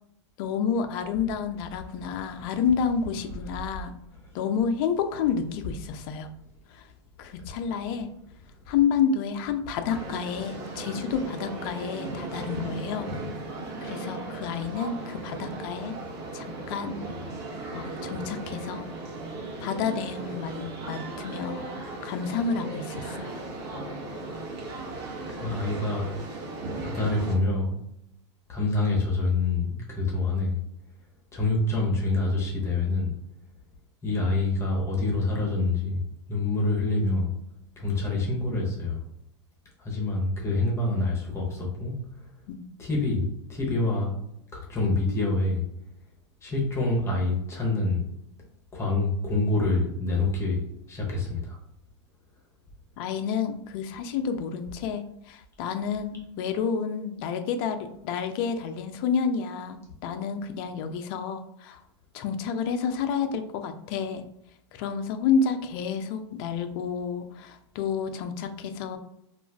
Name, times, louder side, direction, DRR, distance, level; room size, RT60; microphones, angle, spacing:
voice 1, 0.4-3.9 4.3-6.3 6.7-6.8 7.2-8.1 8.7-13.1 13.8-15.9 16.3-17.0 17.7-18.9 19.6-21.7 22.0-23.4 42.5-42.6 53.0-61.8 62.1-64.2 64.7-69.0, left 6 dB, 50° left, 7 dB, 0.4 m, -29 dB
sound 1, 9.9-27.4, right 2 dB, 55° right, 1.1 m, -37 dB
voice 2, 25.3-26.1 26.8-27.8 28.5-30.6 31.3-33.1 34.0-36.0 36.3-37.3 37.8-39.0 39.8-42.0 42.8-43.2 43.5-44.2 44.5-45.6 46.4-48.0 48.7-50.6 50.9-51.6, left 2 dB, 15° left, -2 dB, 0.9 m, -26 dB
2.4 x 2.3 x 3.4 m, 0.78 s
hypercardioid pair, 125°, 15 cm